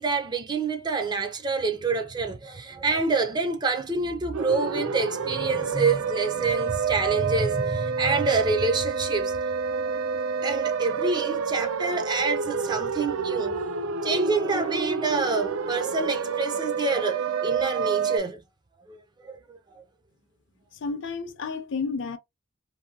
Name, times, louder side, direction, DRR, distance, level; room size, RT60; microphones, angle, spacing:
voice 1, 0.0-9.4 10.4-13.6 14.0-18.4 18.9-19.4 19.7-19.8, right 3 dB, 20° right, 0.3 m, -27 dB
sound 1, 4.3-18.2, right 5 dB, 85° right, 0.4 m, -28 dB
voice 2, 20.8-22.2, left 4 dB, 60° left, 0.5 m, -31 dB
2.7 x 2.6 x 2.7 m
head